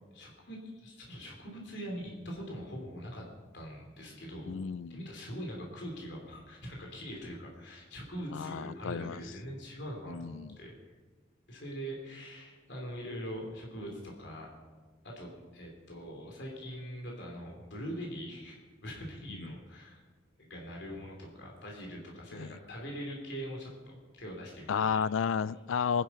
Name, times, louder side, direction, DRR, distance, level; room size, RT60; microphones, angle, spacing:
voice 1, 0.1-3.3 3.5-4.5 4.9-10.7 11.5-14.5 15.0-20.0 20.4-25.0, equal, 60° left, 3.4 m, -42 dB
voice 2, 4.5-5.1 8.3-9.2 10.1-10.6 22.4-22.5 24.7-26.0, left 6 dB, 80° left, 0.4 m, -32 dB
20.5 x 10.5 x 5.7 m
head